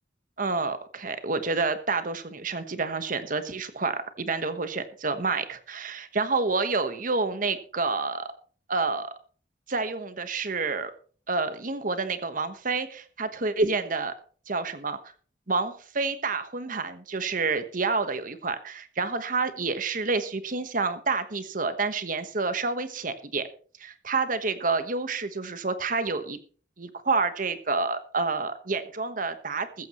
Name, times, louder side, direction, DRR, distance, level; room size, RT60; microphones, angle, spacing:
voice 1, 0.4-8.3 8.7-9.1 9.7-10.9 11.3-14.1 14.5-15.0 15.5-23.5 23.8-26.4 26.8-29.9, right 4 dB, 50° right, 10 dB, 1.2 m, -28 dB
15.0 x 14.0 x 3.1 m, 0.42 s
head